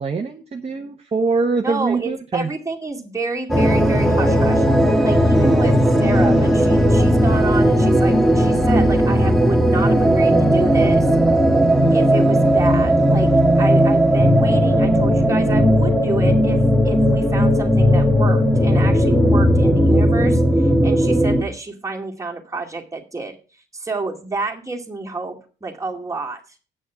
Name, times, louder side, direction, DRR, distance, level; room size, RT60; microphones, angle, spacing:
voice 1, 0.0-2.5 5.4-5.6, right 4 dB, 30° right, 3 dB, 1.0 m, -23 dB
voice 2, 1.6-4.7 5.0-11.1 11.9-13.3 13.6-16.6 16.8-23.4 23.7-26.4, right 3 dB, 15° right, 0 dB, 2.3 m, -29 dB
sound 1, 3.5-21.4, equal, ahead, 1.4 m, -16 dB
8.9 x 6.3 x 6.8 m, 0.37 s
cardioid pair, 90°, 20 cm